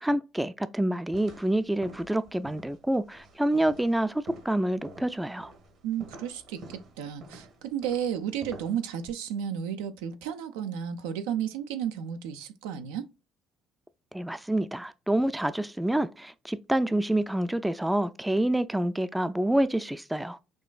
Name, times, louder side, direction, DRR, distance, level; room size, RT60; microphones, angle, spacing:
voice 1, 0.0-5.5 14.1-20.4, right 1 dB, 5° right, 0.4 m, -27 dB
sound 1, 1.1-9.1, right 2 dB, 65° right, 1.4 m, -49 dB
voice 2, 5.8-13.1, right 9 dB, 80° right, 0.5 m, -33 dB
6.1 x 2.5 x 2.3 m
hypercardioid pair, 55°, 0 cm